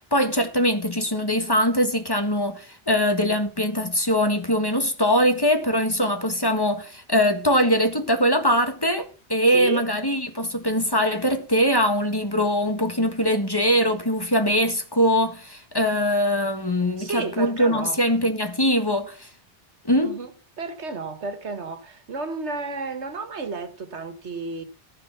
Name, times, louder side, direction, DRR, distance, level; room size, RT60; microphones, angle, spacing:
voice 1, 0.1-19.3 19.8-20.1, equal, 20° left, 1.6 m, -22 dB
voice 2, 9.5-9.9 17.0-18.0 20.0-20.3 20.6-24.6, right 4 dB, 90° right, 1.8 m, -32 dB
14.5 x 5.5 x 6.9 m
omnidirectional pair, 1.1 m